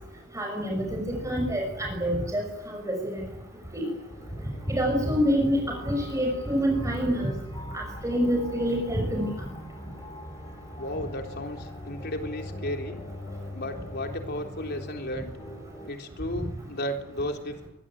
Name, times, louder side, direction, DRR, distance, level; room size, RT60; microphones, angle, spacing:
voice 1, 0.3-3.2 3.7-3.8 4.7-7.3 7.7-9.3, equal, 15° right, 1 dB, 5.9 m, -27 dB
sound 1, 4.1-15.9, equal, 20° left, 6.2 m, -41 dB
voice 2, 10.8-13.0 13.5-15.3 15.9-17.7, left 1 dB, 55° left, 4 dB, 3.8 m, -34 dB
23.5 x 23.0 x 8.9 m, 0.85 s
head